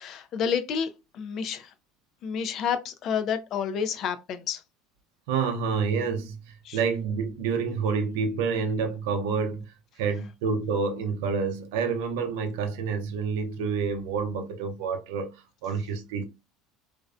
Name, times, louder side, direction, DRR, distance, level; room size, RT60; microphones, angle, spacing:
voice 1, 0.0-1.7 2.2-4.6 6.6-6.8, left 7 dB, 45° left, 0.4 m, -30 dB
voice 2, 5.3-6.4 6.7-15.3 15.6-16.3, right 5 dB, 85° right, 0.5 m, -28 dB
2.5 x 2.0 x 2.4 m
supercardioid pair, 125°, 0 cm